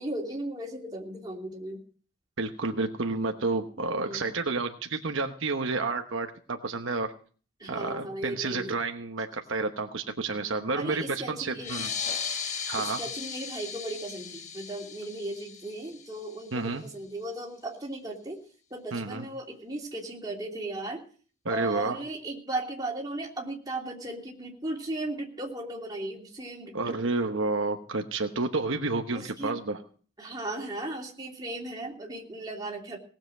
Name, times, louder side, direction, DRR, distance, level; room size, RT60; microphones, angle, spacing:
voice 1, 0.0-1.8 3.8-4.2 7.6-8.7 10.7-11.8 12.8-18.4 18.7-21.0 21.5-27.0 29.1-29.5 30.2-33.0, right 2 dB, 20° right, -1 dB, 2.9 m, -36 dB
voice 2, 2.4-7.1 7.7-11.9 12.6-13.0 16.5-16.8 18.9-19.3 21.4-22.0 26.7-29.8, right 3 dB, 65° right, 5 dB, 1.1 m, -30 dB
sound 1, 11.5-16.7, left 6 dB, 35° left, 1.2 m, -36 dB
18.5 x 7.6 x 7.5 m, 0.43 s
head